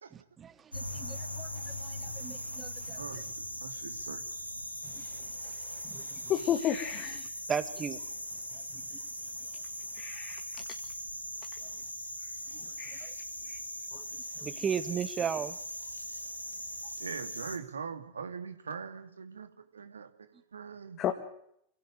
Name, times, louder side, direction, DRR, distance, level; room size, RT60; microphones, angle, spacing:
voice 1, 0.1-3.0 4.8-6.3 7.5-8.0 8.5-9.0 13.0-13.1 13.9-14.1 14.4-15.6, right 7 dB, 20° right, 1.7 m, -37 dB
sound 1, 0.7-17.6, left 1 dB, 90° left, 2.3 m, -40 dB
voice 2, 3.0-4.2 17.0-21.0, right 6 dB, 70° right, 2.3 m, -42 dB
voice 3, 6.3-7.3 9.9-10.4 12.8-13.1 13.4-13.6 21.0-21.1, left 10 dB, 30° left, 2.0 m, -31 dB
26.5 x 16.5 x 9.1 m
figure-of-eight pair, 90°, 0 cm